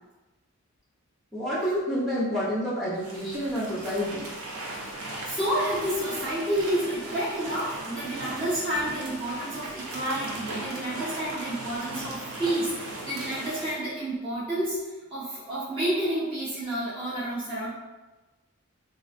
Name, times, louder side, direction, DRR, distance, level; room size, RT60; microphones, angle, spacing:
voice 1, 1.3-4.3, equal, ahead, -8 dB, 0.5 m, -28 dB
sound 1, 2.9-13.7, right 2 dB, 80° right, 0.6 m, -38 dB
voice 2, 5.0-17.7, right 1 dB, 25° right, -12 dB, 0.9 m, -30 dB
3.1 x 2.5 x 2.4 m, 1.1 s
head